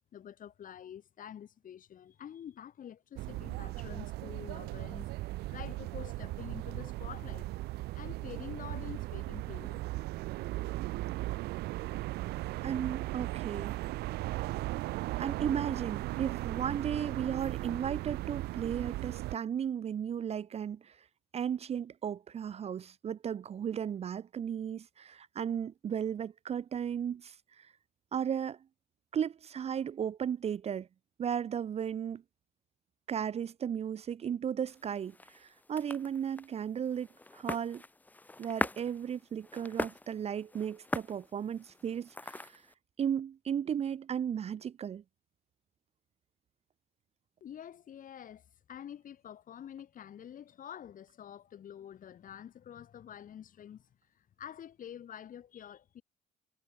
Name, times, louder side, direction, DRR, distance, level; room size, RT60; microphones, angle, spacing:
voice 1, 0.1-7.5 7.9-9.8 47.4-53.9 54.2-56.0, left 9 dB, 50° left, 7.3 m, -47 dB
sound 1, 3.2-19.4, right 18 dB, 70° right, 0.4 m, -37 dB
voice 2, 12.6-13.8 15.2-21.0 21.3-27.7 28.1-28.6 29.1-30.9 31.2-32.2 33.1-37.1 37.3-37.8 38.4-42.6 43.0-45.0, right 8 dB, 40° right, 0.7 m, -35 dB
sound 2, 34.7-42.7, left 2 dB, 10° left, 0.6 m, -41 dB
cardioid pair, 110°, 17 cm